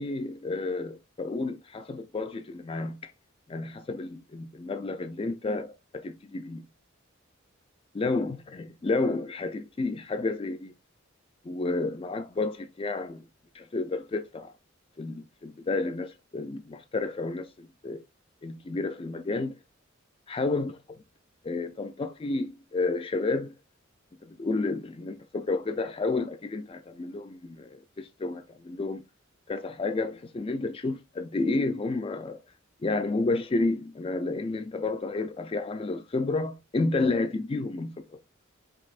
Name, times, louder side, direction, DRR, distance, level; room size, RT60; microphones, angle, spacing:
voice 1, 0.0-3.1 3.5-6.7 7.9-10.7 11.4-13.2 13.5-14.5 15.0-18.0 18.4-19.6 20.3-20.7 21.4-23.5 24.2-29.0 29.5-32.4 32.8-38.1, left 3 dB, 25° left, 0.3 m, -31 dB
5.2 x 3.4 x 2.4 m
head